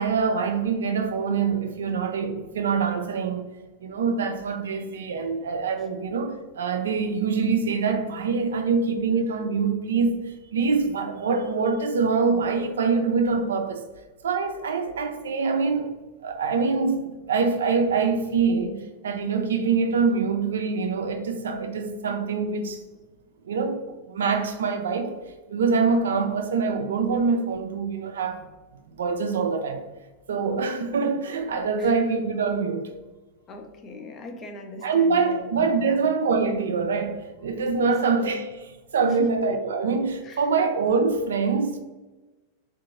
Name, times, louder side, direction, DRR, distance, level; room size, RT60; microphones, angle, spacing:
voice 1, 0.0-3.4 3.8-13.8 14.2-16.0 16.2-22.8 23.5-25.1 25.5-28.4 28.9-29.8 30.3-32.9 34.8-41.8, right 5 dB, 65° right, 0.3 m, -25 dB
voice 2, 33.5-35.4 35.8-36.0 37.8-37.9 40.2-40.4, left 2 dB, 25° left, 0.5 m, -40 dB
3.6 x 2.5 x 2.5 m
figure-of-eight pair, 90°, 0 cm